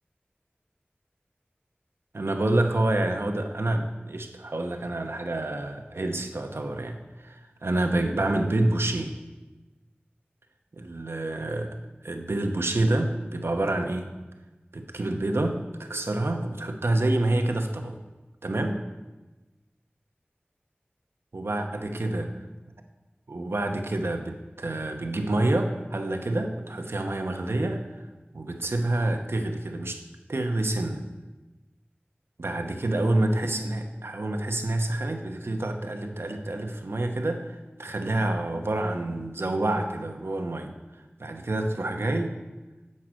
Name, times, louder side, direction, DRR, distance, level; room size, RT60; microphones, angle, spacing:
voice 1, 2.1-9.1 10.7-11.7 12.0-14.1 14.7-18.0 18.4-18.8 21.3-22.3 23.3-27.9 28.3-30.0 30.3-31.0 32.4-40.7 41.2-42.4, right 2 dB, 85° right, 5 dB, 0.9 m, -28 dB
11.0 x 7.5 x 5.2 m, 1.2 s
wide cardioid pair, 45°, 4 cm